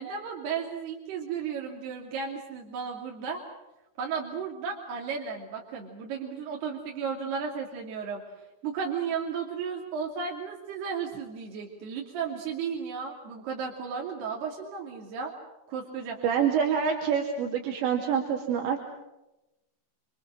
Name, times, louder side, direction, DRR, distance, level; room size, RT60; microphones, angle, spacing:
voice 1, 0.0-3.4 4.0-8.2 8.6-15.3 15.7-16.2, right 6 dB, 65° right, 0 dB, 4.7 m, -34 dB
voice 2, 16.2-18.8, right 7 dB, 80° right, 0 dB, 4.8 m, -26 dB
27.5 x 27.5 x 6.3 m, 0.95 s
omnidirectional pair, 5.1 m